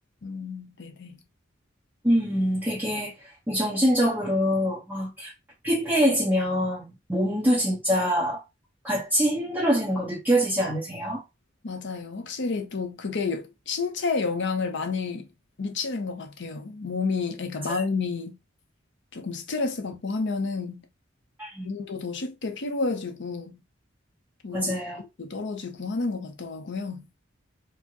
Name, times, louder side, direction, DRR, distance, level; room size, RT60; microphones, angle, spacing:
voice 1, 0.2-1.2 11.6-15.3 15.6-18.3 19.1-20.8 21.6-23.5 24.4-24.7 25.0-27.1, left 4 dB, 60° left, 0.7 m, -30 dB
voice 2, 2.0-5.3 5.6-8.4 8.8-11.2 17.7-17.8 21.4-21.7 24.5-25.0, equal, 10° right, 0.9 m, -25 dB
4.3 x 2.1 x 2.9 m
head